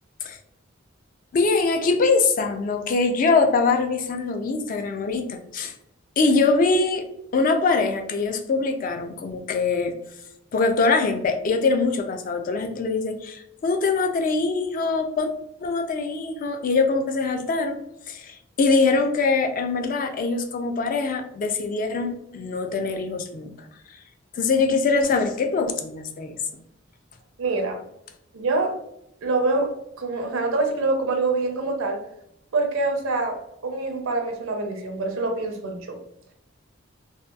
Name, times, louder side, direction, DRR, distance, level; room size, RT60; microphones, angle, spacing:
voice 1, 1.3-5.7 6.2-7.0 7.3-9.9 10.5-15.3 15.6-17.8 18.1-24.0 24.3-26.4, left 4 dB, 40° left, 6 dB, 0.3 m, -23 dB
voice 2, 27.4-27.8 28.3-28.8 29.2-32.0 32.5-36.0, right 3 dB, 80° right, 4 dB, 0.5 m, -25 dB
2.7 x 2.2 x 2.3 m, 0.78 s
head